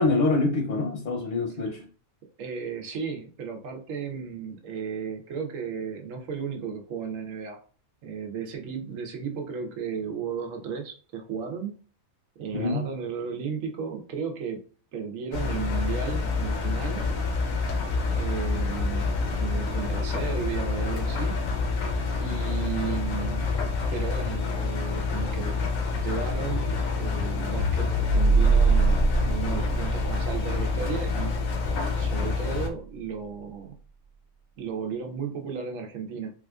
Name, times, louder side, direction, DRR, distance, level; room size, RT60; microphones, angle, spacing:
voice 1, 0.0-1.9 12.5-12.9, left 3 dB, 50° left, 0.7 m, -25 dB
voice 2, 2.4-7.6 8.0-11.8 12.4-14.6 14.9-17.1 18.1-21.4 22.2-23.5 23.9-25.6 25.9-31.3 32.0-33.7 34.6-36.3, right 6 dB, 90° right, 1.1 m, -34 dB
Engine, 15.3-32.7, left 4 dB, 85° left, 1.1 m, -28 dB
sound 1, 27.6-32.1, right 3 dB, 60° right, 1.1 m, -24 dB
4.1 x 2.4 x 2.3 m
omnidirectional pair, 1.3 m